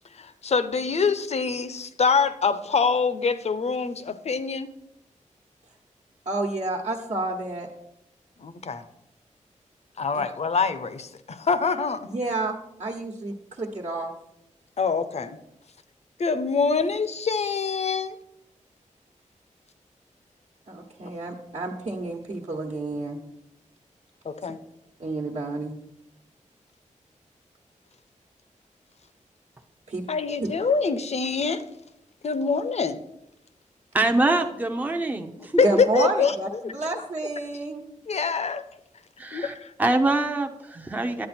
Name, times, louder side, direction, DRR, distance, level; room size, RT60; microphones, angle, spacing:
voice 1, 0.1-4.7 8.4-8.9 10.0-12.1 14.8-15.4 16.2-18.2 24.2-24.6 30.1-31.6 32.2-33.0 35.6-36.3 36.6-36.7 38.1-38.6 39.3-39.7, left 5 dB, 55° left, 12 dB, 0.8 m, -25 dB
voice 2, 6.2-7.7 12.1-14.1 20.7-23.2 25.0-25.7 29.9-30.0 30.4-30.5 34.0-34.1 35.6-37.8, right 2 dB, 55° right, -2 dB, 1.2 m, -30 dB
voice 3, 33.9-35.5 39.2-39.5 39.8-41.3, right 2 dB, 10° right, 5 dB, 0.7 m, -24 dB
11.0 x 8.6 x 4.3 m, 0.84 s
wide cardioid pair, 140°, 13 cm